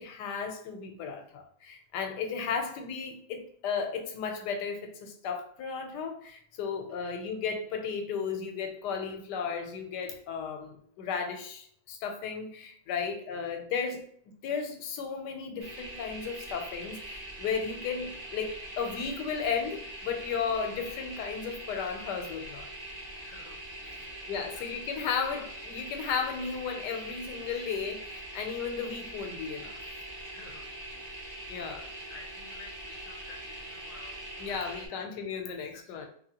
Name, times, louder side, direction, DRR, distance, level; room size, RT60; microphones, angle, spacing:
voice 1, 0.0-14.1 14.4-22.7 24.3-29.7 31.5-31.9 34.4-36.1, left 6 dB, 90° left, 5 dB, 1.2 m, -34 dB
voice 2, 2.5-2.8 6.9-7.2 13.0-13.6 23.2-24.8 30.2-31.2 31.6-35.1 35.3-36.1, left 3 dB, 65° left, 0 dB, 0.8 m, -54 dB
sound 1, 15.6-34.9, right 1 dB, 80° right, 0.3 m, -43 dB
2.9 x 2.7 x 2.8 m, 0.62 s
omnidirectional pair, 1.8 m